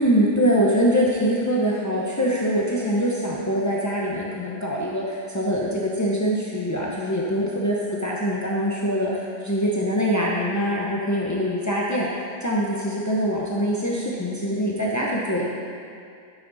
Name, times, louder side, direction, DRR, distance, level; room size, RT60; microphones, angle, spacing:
voice 1, 0.0-12.1 12.4-15.5, equal, 20° left, -5 dB, 0.5 m, -23 dB
12.5 x 9.4 x 4.1 m, 2.4 s
omnidirectional pair, 1.8 m